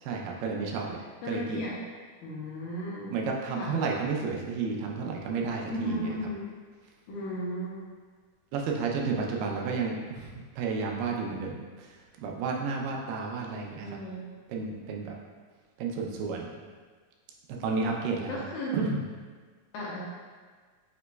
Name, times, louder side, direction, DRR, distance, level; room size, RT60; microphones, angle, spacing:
voice 1, 0.0-1.6 3.1-6.1 8.5-12.0 12.2-14.0 14.5-15.2 15.8-16.5 17.5-18.4 18.7-19.0, right 4 dB, 85° right, 0 dB, 2.2 m, -32 dB
voice 2, 1.2-1.8 2.2-3.2 3.6-3.7 5.7-6.5 7.1-7.9 13.8-14.3 18.3-18.7 19.7-20.0, left 1 dB, 75° left, -5 dB, 2.0 m, -35 dB
6.2 x 2.9 x 2.2 m, 1.5 s
omnidirectional pair, 3.8 m